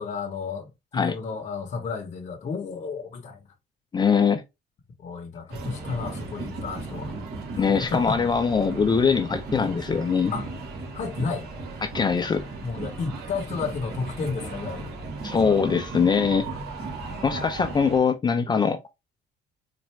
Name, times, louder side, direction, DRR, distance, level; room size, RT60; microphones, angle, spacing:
voice 1, 0.0-3.4 5.0-7.1 7.5-8.2 10.3-10.5 10.9-11.5 12.6-14.9 16.4-17.5, left 4 dB, 45° left, 0.9 m, -32 dB
voice 2, 3.9-4.4 7.6-10.3 11.8-12.4 15.2-16.5 17.2-18.8, left 6 dB, 25° left, 0.5 m, -22 dB
sound 1, 5.5-18.0, right 3 dB, 70° right, 2.0 m, -36 dB
4.2 x 2.5 x 3.1 m
cardioid pair, 110°, 17 cm